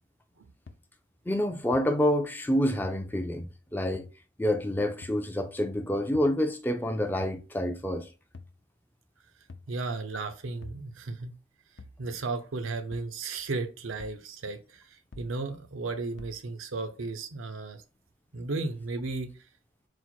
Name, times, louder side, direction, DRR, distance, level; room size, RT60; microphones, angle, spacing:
sound 1, 0.7-0.8 1.7-1.8 2.8-2.9 3.9-4.1 5.0-5.2 6.1-6.3 7.2-7.4 8.3-8.6 9.5-9.7 10.6-10.8 11.8-12.0 12.9-13.1 14.0-14.2 15.1-15.3 16.2-16.4, left 3 dB, 60° left, 0.5 m, -46 dB
voice 1, 1.3-4.1 4.4-8.1, left 1 dB, 10° left, 0.3 m, -28 dB
voice 2, 9.7-11.3 12.0-17.8 18.3-19.3, right 3 dB, 90° right, 0.6 m, -34 dB
4.3 x 2.1 x 4.5 m
head